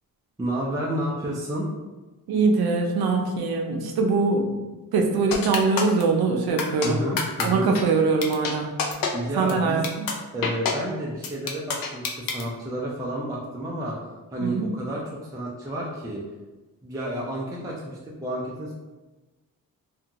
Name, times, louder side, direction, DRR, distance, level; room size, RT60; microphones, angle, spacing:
voice 1, 0.4-1.7 6.8-7.7 9.1-9.8 10.3-14.0 14.3-16.2 16.8-18.7, right 1 dB, 10° right, -4 dB, 0.4 m, -30 dB
voice 2, 2.3-4.5 4.9-7.0 7.4-8.7 9.4-10.1 14.4-14.7, right 4 dB, 85° right, 2 dB, 0.5 m, -22 dB
sound 1, 5.3-6.0 6.6-6.9 7.2-7.4 7.7-7.8 8.2-8.5 8.8-9.1 9.5-9.6 9.8-10.1 10.4-10.7 11.2-12.4, left 6 dB, 70° left, 0.5 m, -26 dB
2.5 x 2.3 x 2.8 m, 1.2 s
cardioid pair, 110°, 36 cm